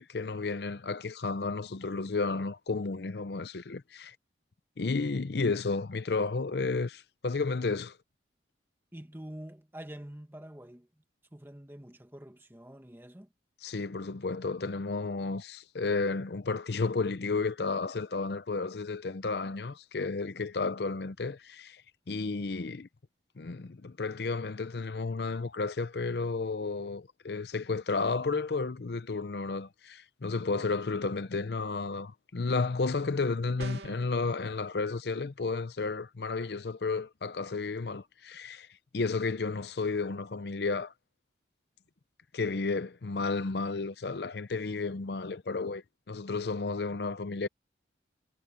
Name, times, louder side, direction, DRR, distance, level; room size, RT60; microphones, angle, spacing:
voice 1, 0.0-4.2 4.8-8.0 13.6-21.8 22.1-22.9 23.4-38.7 38.9-40.9 42.3-47.5, left 4 dB, 60° left, 0.6 m, -32 dB
voice 2, 8.9-10.9 11.3-13.3, right 1 dB, 10° right, 1.4 m, -46 dB
sound 1, 33.6-34.1, right 3 dB, 65° right, 2.0 m, -42 dB
head